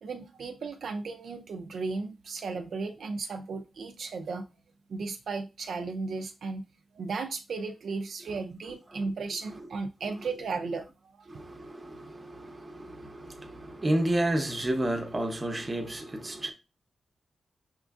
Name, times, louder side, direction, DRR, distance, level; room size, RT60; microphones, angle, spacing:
voice 1, 0.0-4.4 4.9-6.6 6.9-10.8 11.2-11.3, right 4 dB, 65° right, 0.4 m, -35 dB
voice 2, 11.3-16.5, right 1 dB, 20° right, 0.7 m, -31 dB
5.9 x 2.4 x 2.3 m
wide cardioid pair, 160°, 0 cm